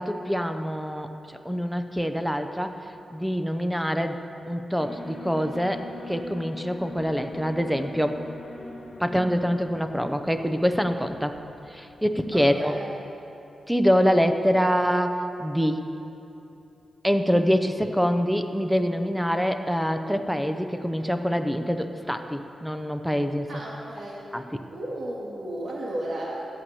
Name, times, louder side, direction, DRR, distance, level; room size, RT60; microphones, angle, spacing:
voice 1, 0.0-2.7 3.1-4.2 4.5-8.2 9.0-11.4 11.7-12.7 13.7-15.8 17.0-23.5 24.3-24.4, equal, ahead, 7 dB, 0.6 m, -25 dB
Alarm, 4.8-11.9, left 2 dB, 60° left, 1.4 m, -42 dB
voice 2, 12.3-12.9 23.5-24.2 24.7-26.5, right 1 dB, 55° right, -5 dB, 2.2 m, -34 dB
14.0 x 8.4 x 6.9 m, 2.9 s
wide cardioid pair, 160°, 0 cm